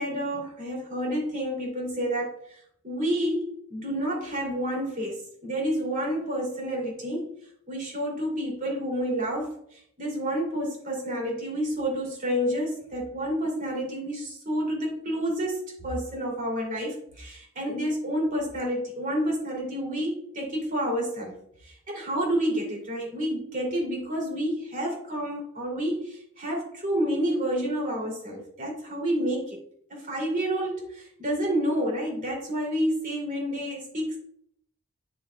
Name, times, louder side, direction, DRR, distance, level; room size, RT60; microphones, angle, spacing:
voice 1, 0.0-7.3 7.7-29.6 29.9-34.2, equal, 40° right, -1 dB, 2.9 m, -29 dB
9.4 x 7.1 x 2.3 m, 0.68 s
head